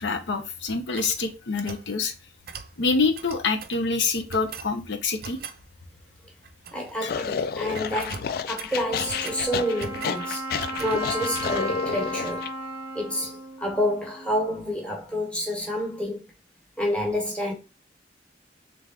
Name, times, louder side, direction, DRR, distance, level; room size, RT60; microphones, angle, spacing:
voice 1, 0.0-2.1 2.8-5.4 7.0-7.1, left 4 dB, 80° left, 0.7 m, -26 dB
sound 1, 0.7-1.9 2.5-2.7 3.1-3.8 4.3-4.7 5.2-5.6 6.4-7.0 7.3-7.5 7.7-9.4 9.8-10.2 10.6-11.0, right 6 dB, 55° right, 0.4 m, -41 dB
voice 2, 6.7-10.4 10.8-12.5 12.9-16.2 16.8-17.5, equal, 5° left, 1.2 m, -29 dB
sound 2, 7.1-12.5, left 6 dB, 55° left, 0.3 m, -30 dB
Wind instrument woodwind instrument, 8.9-14.6, equal, 20° right, 1.0 m, -35 dB
3.4 x 3.4 x 3.7 m
head